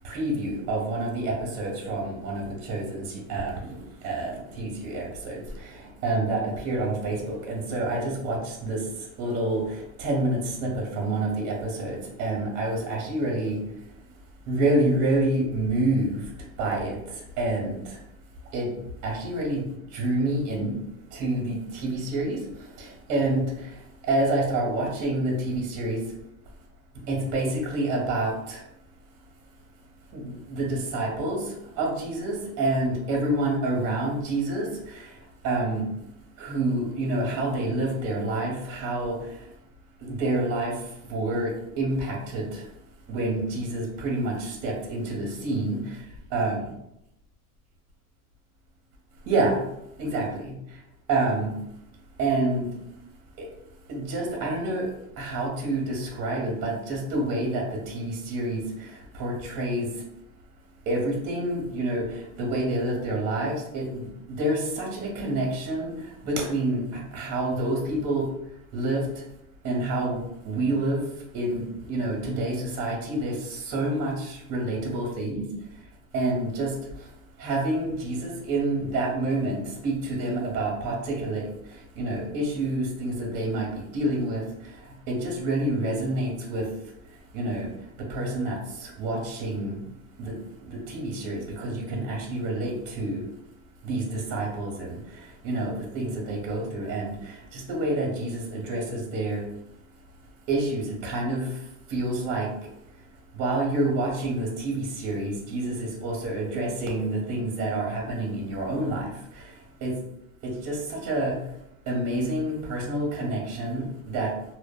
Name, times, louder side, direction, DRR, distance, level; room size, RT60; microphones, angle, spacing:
voice 1, 0.0-3.8 4.0-5.7 6.0-8.8 9.2-13.6 14.5-16.2 16.6-17.0 17.4-17.8 18.5-18.7 19.0-19.6 19.9-20.8 21.1-22.4 22.8-23.4 24.1-26.0 27.1-28.6 30.1-31.4 31.8-35.0 35.4-35.8 36.4-39.2 40.0-40.7 41.1-42.6 43.1-45.8 46.3-46.6 49.3-49.6 50.0-50.5 51.1-51.5 52.2-52.7 53.9-54.9 55.2-58.6 59.1-59.9 60.9-62.0 62.4-64.0 64.3-65.9 66.2-68.3 68.7-69.0 69.6-70.2 70.4-71.0 71.3-75.5 76.1-76.7 77.4-81.4 82.0-84.4 85.1-86.7 87.3-87.7 88.1-89.8 90.2-90.3 90.6-93.2 93.8-95.0 95.4-99.4 100.5-101.5 101.9-102.5 103.3-109.1 109.8-109.9 110.4-111.3 111.9-114.3, right 2 dB, 40° right, 0 dB, 0.7 m, -28 dB
2.6 x 2.1 x 2.2 m, 0.83 s
supercardioid pair, 140°, 41 cm